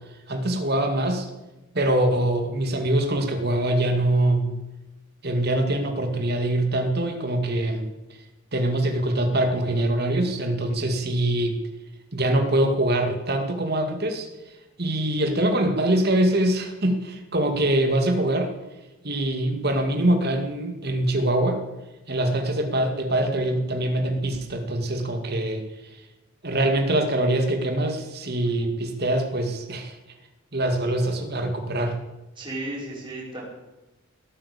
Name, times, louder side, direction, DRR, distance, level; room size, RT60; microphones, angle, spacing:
voice 1, 0.3-1.3 1.7-4.5 5.2-7.9 8.5-11.6 12.1-14.3 14.8-18.5 19.0-21.6 22.1-25.6 26.4-29.9 30.5-32.0, right 1 dB, 50° right, 5 dB, 2.3 m, -23 dB
voice 2, 32.4-33.4, right 1 dB, 25° right, -4 dB, 5.8 m, -34 dB
18.0 x 9.0 x 8.6 m, 1.1 s
head